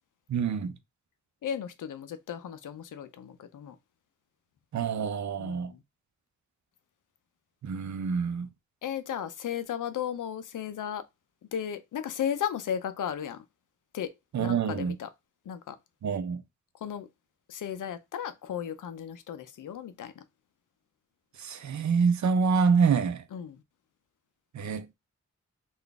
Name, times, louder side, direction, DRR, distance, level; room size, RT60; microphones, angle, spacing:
voice 1, 0.3-0.7 4.7-5.7 7.6-8.5 14.3-14.9 16.0-16.4 21.4-23.2 24.5-24.9, right 5 dB, 70° right, 0.6 m, -26 dB
voice 2, 1.4-3.8 5.4-5.8 8.8-11.0 11.5-13.4 13.9-14.1 14.4-15.1 15.5-15.8 16.8-17.1 17.5-20.2 23.3-23.6, left 9 dB, 90° left, 0.5 m, -35 dB
3.8 x 2.5 x 3.4 m
cardioid pair, 65°, 30 cm